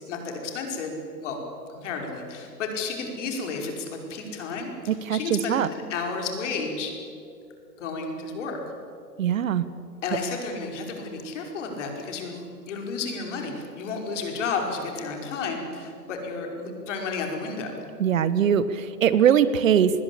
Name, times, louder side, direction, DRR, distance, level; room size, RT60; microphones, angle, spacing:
voice 1, 0.1-0.9 1.2-1.4 1.7-6.9 7.8-8.6 10.0-17.7, left 4 dB, 45° left, 3 dB, 5.4 m, -32 dB
voice 2, 4.9-5.7 9.2-9.7 18.0-19.9, right 9 dB, 50° right, 15 dB, 1.3 m, -21 dB
25.0 x 21.0 x 8.5 m, 2.5 s
hypercardioid pair, 140°, 50 cm